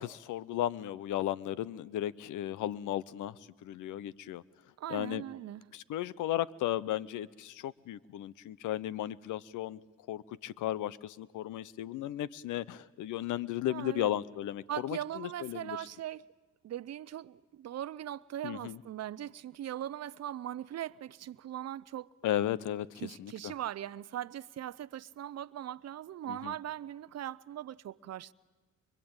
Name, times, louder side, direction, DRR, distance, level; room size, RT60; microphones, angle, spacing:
voice 1, 0.0-4.4 4.9-5.2 5.7-9.8 10.1-15.8 18.4-18.8 22.2-23.5 26.3-26.5, left 12 dB, 80° left, 0.8 m, -35 dB
voice 2, 4.8-5.6 13.7-14.1 14.7-16.2 16.6-22.1 23.0-28.3, right 11 dB, 60° right, 0.7 m, -40 dB
25.5 x 23.5 x 8.9 m
cardioid pair, 90°, 30 cm